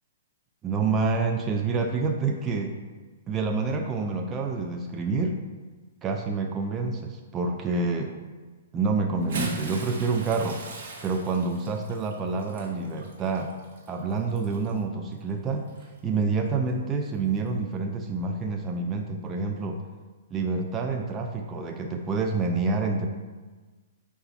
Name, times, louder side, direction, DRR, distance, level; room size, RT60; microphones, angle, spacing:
voice 1, 0.6-2.7 3.3-5.4 6.0-8.2 8.7-10.6 11.0-13.5 13.9-15.7 16.0-19.8 20.3-23.1, right 4 dB, 20° right, 3 dB, 0.3 m, -28 dB
Bathtub (filling or washing) / Splash splatter, 9.1-14.8 15.7-15.8 17.3-17.4, right 3 dB, 55° right, 1.0 m, -37 dB
5.0 x 2.3 x 4.0 m, 1.3 s
hypercardioid pair, 140°, 0 cm